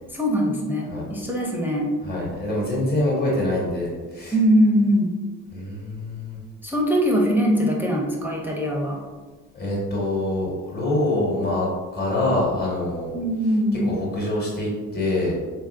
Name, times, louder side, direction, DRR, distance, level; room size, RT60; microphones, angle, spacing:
voice 1, 0.1-1.9 4.3-5.1 6.6-9.0 13.1-13.9, equal, 5° right, -3 dB, 0.5 m, -21 dB
voice 2, 2.0-4.4 5.5-6.4 9.5-11.7 11.9-13.1 14.0-15.4, left 1 dB, 30° left, -5 dB, 1.3 m, -25 dB
3.9 x 2.6 x 2.4 m, 1.4 s
cardioid pair, 90°, 30 cm